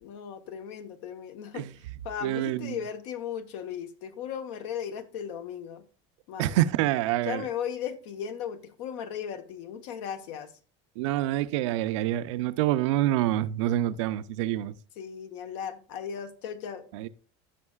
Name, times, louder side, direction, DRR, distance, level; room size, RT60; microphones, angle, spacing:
voice 1, 0.0-1.7 2.0-5.8 6.3-6.6 7.2-10.5 15.0-16.9, left 8 dB, 80° left, 1.1 m, -36 dB
voice 2, 2.2-2.8 6.4-7.4 11.0-14.7 16.9-17.1, right 14 dB, 85° right, 0.5 m, -26 dB
14.0 x 5.4 x 2.4 m
supercardioid pair, 115°, 15 cm